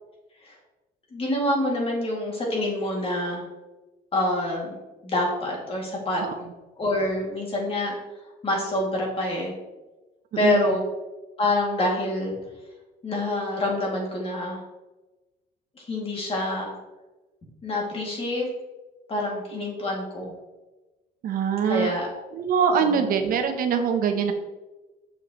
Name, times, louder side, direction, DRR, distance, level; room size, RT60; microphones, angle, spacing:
voice 1, 1.1-3.4 4.1-4.7 5.0-6.2 6.8-7.9 8.4-9.5 10.4-10.8 11.4-12.3 13.0-14.6 15.8-16.7 17.6-18.5 19.1-20.3 21.7-22.1 22.8-23.0, left 1 dB, 35° left, -2 dB, 2.2 m, -26 dB
voice 2, 10.3-10.6 21.2-21.9 22.3-24.3, right 6 dB, 55° right, 6 dB, 0.7 m, -23 dB
6.6 x 5.8 x 3.0 m, 1.1 s
cardioid pair, 110°, 17 cm